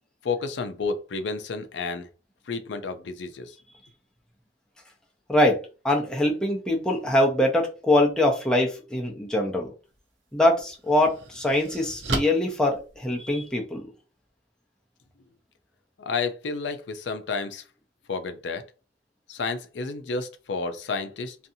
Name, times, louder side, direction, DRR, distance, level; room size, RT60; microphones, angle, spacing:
voice 1, 0.2-2.1 2.5-3.5 16.0-17.6 18.1-18.6 19.3-21.4, left 4 dB, 75° left, 0.5 m, -31 dB
voice 2, 5.3-9.7 10.3-13.8, left 1 dB, 5° left, 0.6 m, -23 dB
sound 1, 9.8-10.0 10.6-13.6, right 2 dB, 85° right, 0.7 m, -35 dB
2.6 x 2.4 x 2.6 m
head